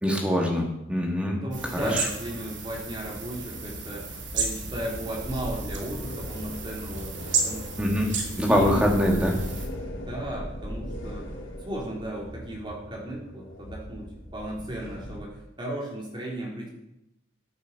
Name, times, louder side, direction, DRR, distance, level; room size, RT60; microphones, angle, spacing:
voice 1, 0.0-1.4 1.7-2.1 7.8-8.1 8.4-9.4, equal, 5° right, 0 dB, 2.7 m, -24 dB
voice 2, 1.3-7.1 7.4-9.3 10.1-11.3 11.6-16.7, right 1 dB, 25° right, -3 dB, 3.9 m, -36 dB
sound 1, 1.5-9.7, right 5 dB, 65° right, 2.5 m, -34 dB
sound 2, 3.4-15.2, equal, 70° left, 3.1 m, -38 dB
14.0 x 8.1 x 7.0 m, 0.86 s
head